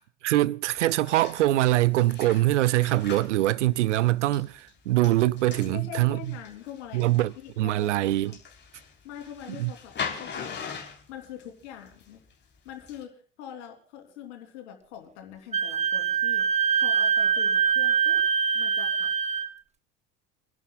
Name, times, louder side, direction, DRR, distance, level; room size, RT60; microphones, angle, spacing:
voice 1, 0.0-6.3 6.9-8.4 9.6-9.7, right 16 dB, 70° right, 0.6 m, -24 dB
sound 1, 0.7-5.7 6.2-12.3 12.6-13.0, left 6 dB, 30° left, 3.6 m, -41 dB
voice 2, 5.6-8.3 9.0-12.2 12.6-16.4 16.7-18.2 18.5-19.1, left 10 dB, 65° left, 3.2 m, -43 dB
Wind instrument woodwind instrument, 15.5-19.5, right 7 dB, 20° right, 1.0 m, -24 dB
29.5 x 11.0 x 2.3 m
figure-of-eight pair, 65°, 37 cm